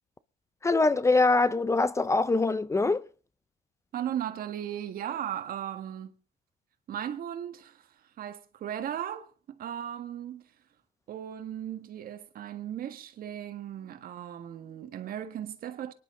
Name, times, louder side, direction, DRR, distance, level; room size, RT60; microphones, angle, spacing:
voice 1, 0.6-3.0, left 3 dB, 15° left, 0.6 m, -23 dB
voice 2, 3.9-6.1 6.9-10.4 11.1-15.9, right 10 dB, 60° right, 1.7 m, -37 dB
23.5 x 11.0 x 3.8 m
cardioid pair, 110°, 17 cm